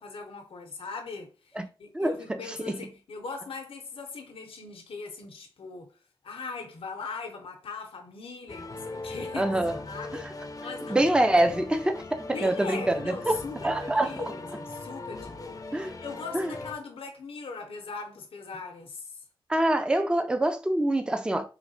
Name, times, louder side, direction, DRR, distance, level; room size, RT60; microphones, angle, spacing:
voice 1, 0.0-5.9 6.2-9.5 9.9-10.3 10.6-11.7 12.3-19.2, left 4 dB, 85° left, 0.6 m, -40 dB
sound 1, 8.5-16.7, left 3 dB, 40° left, 0.5 m, -40 dB
voice 2, 9.3-9.8 10.1-10.2 10.9-14.1 15.7-16.0 16.3-16.5 19.5-21.5, right 1 dB, 10° right, 0.4 m, -25 dB
3.4 x 3.2 x 2.6 m
wide cardioid pair, 70°, 9 cm